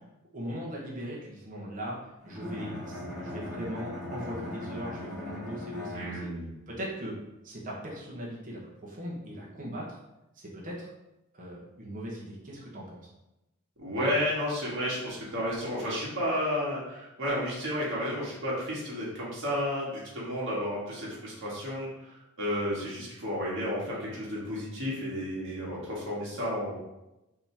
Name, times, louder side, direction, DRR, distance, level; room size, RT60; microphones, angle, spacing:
voice 1, 0.3-6.3 6.7-7.2 7.4-10.0 10.3-10.9 11.3-13.1, equal, 40° right, -5 dB, 1.0 m, -39 dB
Bowed string instrument, 2.2-6.5, left 1 dB, ahead, 1.3 m, -39 dB
voice 2, 5.9-6.5 13.8-21.9 22.4-26.8, equal, 60° right, -6 dB, 1.6 m, -32 dB
5.1 x 2.9 x 3.4 m, 0.94 s
head